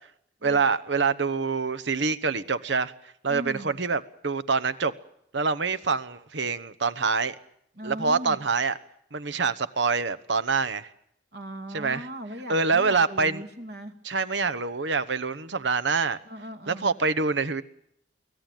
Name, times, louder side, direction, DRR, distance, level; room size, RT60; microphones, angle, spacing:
voice 1, 0.4-2.9 3.2-4.9 5.3-7.3 7.8-8.8 9.1-10.9 11.7-12.1 12.5-13.4 14.0-16.2 16.7-17.6, right 4 dB, 80° right, 1.1 m, -25 dB
voice 2, 3.3-3.7 7.8-8.4 11.3-13.9 16.3-16.9, equal, 60° right, 2.6 m, -38 dB
24.0 x 17.0 x 9.1 m
head